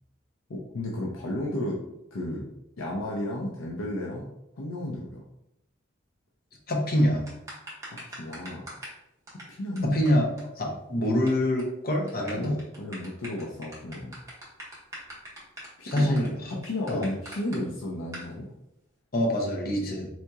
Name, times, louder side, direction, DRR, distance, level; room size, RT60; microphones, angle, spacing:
voice 1, 0.5-1.8 2.1-2.4 2.8-4.3 4.6-5.2 7.9-8.7 9.5-10.0 10.6-10.8 12.3-14.1 15.8-16.1 16.5-18.5, left 1 dB, 90° left, -3 dB, 0.6 m, -33 dB
voice 2, 6.7-7.3 9.8-10.3 10.6-12.6 15.8-16.6 16.9-17.1 19.1-20.1, left 1 dB, 45° left, 0 dB, 0.7 m, -25 dB
sound 1, 7.3-9.0 9.3-9.4 9.8-9.9 10.1-10.2 10.4-10.5 10.7-11.3 11.6-11.7 12.1-17.6 18.1-18.3, right 1 dB, 15° right, 0.9 m, -41 dB
4.2 x 2.7 x 2.3 m, 0.83 s
head